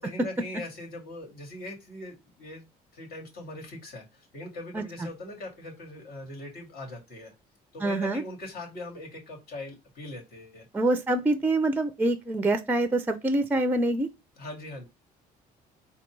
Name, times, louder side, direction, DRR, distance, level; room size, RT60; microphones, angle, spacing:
voice 1, 0.0-2.6 2.9-7.3 7.7-10.7 14.4-14.9, left 1 dB, 65° left, 2.2 m, -41 dB
voice 2, 7.8-8.2 10.7-14.1, right 2 dB, 10° right, 0.5 m, -25 dB
4.2 x 2.3 x 4.5 m
cardioid pair, 110°, 17 cm